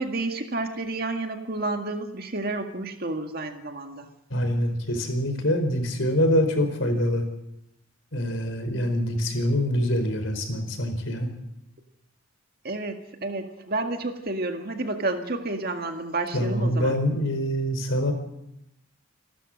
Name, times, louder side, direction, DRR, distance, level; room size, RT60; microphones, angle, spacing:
voice 1, 0.0-4.1 12.6-17.0, right 2 dB, 50° right, 5 dB, 1.9 m, -30 dB
voice 2, 4.3-7.2 8.1-11.3 16.3-18.1, equal, 75° left, 7 dB, 4.4 m, -25 dB
28.0 x 12.5 x 7.8 m, 0.85 s
head